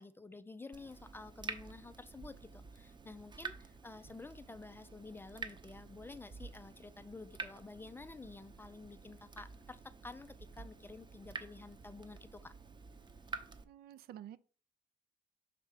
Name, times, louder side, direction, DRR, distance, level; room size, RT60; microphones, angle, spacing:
voice 1, 0.0-12.5, left 3 dB, 15° left, 0.4 m, -51 dB
Water tap faucet / Drip, 0.7-13.6, right 4 dB, 25° right, 0.8 m, -49 dB
voice 2, 13.6-14.4, right 11 dB, 70° right, 0.5 m, -50 dB
6.4 x 3.3 x 4.9 m
cardioid pair, 110°, 17 cm